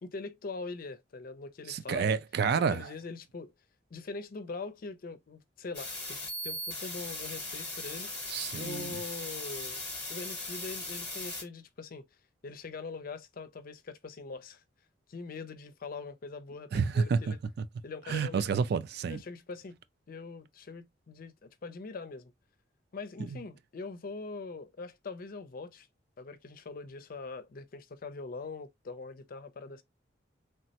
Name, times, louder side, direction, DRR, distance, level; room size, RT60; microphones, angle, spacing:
voice 1, 0.0-2.2 2.6-3.5 3.9-8.1 8.6-9.8 10.1-12.1 12.4-14.6 15.1-17.4 17.8-18.5 19.1-19.8 20.1-22.3 22.9-25.9 26.2-29.8, left 4 dB, 50° left, 0.5 m, -42 dB
voice 2, 1.7-2.9 8.3-9.0 16.7-17.2 18.1-19.2, right 6 dB, 60° right, 0.3 m, -29 dB
sound 1, 5.7-11.4, left 2 dB, 10° left, 0.9 m, -38 dB
3.3 x 2.1 x 2.7 m
head